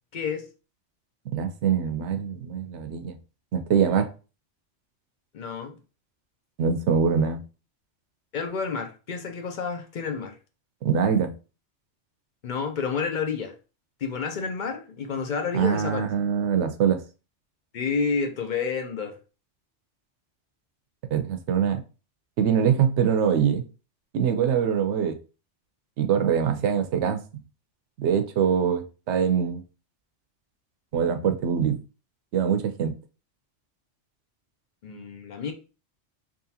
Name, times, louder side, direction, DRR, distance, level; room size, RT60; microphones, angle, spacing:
voice 1, 0.1-0.5 5.3-5.8 8.3-10.4 12.4-13.5 14.0-16.0 17.7-19.2 34.8-35.5, left 5 dB, 55° left, 0.5 m, -29 dB
voice 2, 1.3-3.2 3.5-4.1 6.6-7.4 10.8-11.3 15.5-17.0 21.1-21.8 22.4-23.6 24.1-25.2 26.0-27.2 28.0-29.6 30.9-31.8 32.3-32.9, right 7 dB, 75° right, 0.9 m, -23 dB
3.7 x 2.8 x 2.8 m
omnidirectional pair, 1.2 m